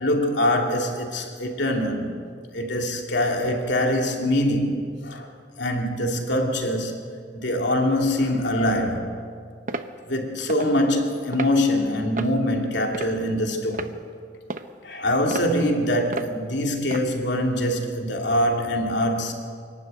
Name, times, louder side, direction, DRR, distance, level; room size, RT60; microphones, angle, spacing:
voice 1, 0.0-2.2 2.5-4.8 5.0-7.0 7.3-9.2 10.1-13.9 14.8-19.3, left 1 dB, 75° left, 2.8 m, -24 dB
sound 1, 9.7-9.9 10.5-10.7 11.3-11.5 12.2-12.4 12.9-13.3 13.7-13.9 14.5-14.7 15.3-15.5 16.1-16.3 16.9-17.1, right 3 dB, 45° right, 0.8 m, -32 dB
27.0 x 12.0 x 9.1 m
head